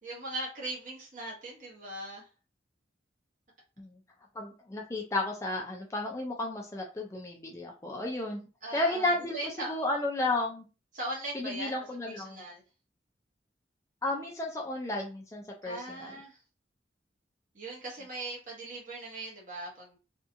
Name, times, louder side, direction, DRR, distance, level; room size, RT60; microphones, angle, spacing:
voice 1, 0.0-2.3 8.6-9.8 10.9-12.6 15.6-16.4 17.5-20.0, right 1 dB, 45° right, -3 dB, 1.0 m, -39 dB
voice 2, 4.3-10.6 11.3-12.4 14.0-16.2, left 2 dB, 15° left, -1 dB, 0.4 m, -33 dB
2.7 x 2.3 x 2.5 m, 0.33 s
head